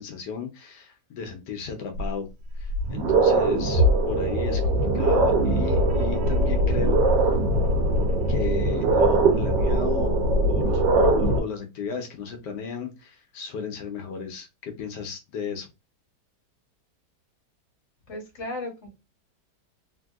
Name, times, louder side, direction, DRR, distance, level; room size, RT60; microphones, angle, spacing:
voice 1, 0.0-2.3 2.6-7.0 8.3-10.2 10.5-15.7, left 5 dB, 80° left, 4 dB, 1.3 m, -34 dB
sound 1, 2.0-2.1 2.6-11.4, right 2 dB, 85° right, 1.4 m, -21 dB
voice 2, 18.1-18.9, left 2 dB, 45° left, 1 dB, 1.3 m, -35 dB
3.3 x 2.6 x 2.3 m, 0.25 s
omnidirectional pair, 1.9 m